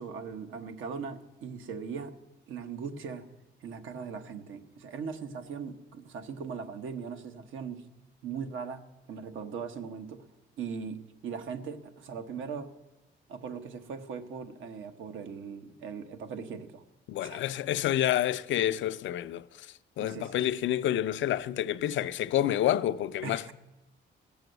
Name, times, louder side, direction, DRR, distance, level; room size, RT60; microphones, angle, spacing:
voice 1, 0.0-2.1 2.5-3.3 3.6-7.8 8.2-10.3 10.6-12.7 13.3-16.8 17.2-17.4 20.0-20.4 23.2-23.5, right 6 dB, 80° right, 1.1 m, -39 dB
voice 2, 17.1-19.7 20.0-23.5, left 12 dB, 75° left, 0.5 m, -28 dB
17.0 x 7.1 x 7.9 m
cardioid pair, 90°, 20 cm